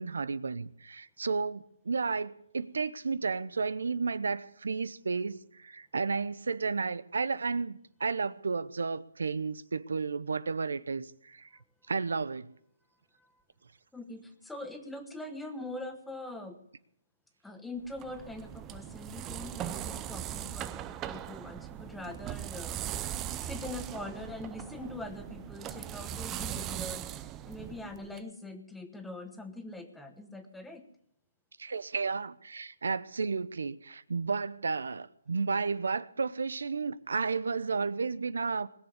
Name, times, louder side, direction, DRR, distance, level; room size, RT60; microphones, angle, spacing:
voice 1, 0.0-11.5 11.9-12.5 31.6-38.7, right 4 dB, 80° right, 0.8 m, -32 dB
voice 2, 13.9-16.6 17.4-22.8 23.4-30.9, left 2 dB, 5° left, 1.1 m, -43 dB
sound 1, 17.9-28.2, right 11 dB, 15° right, 0.5 m, -39 dB
20.5 x 7.3 x 8.0 m
hypercardioid pair, 165°, 0 cm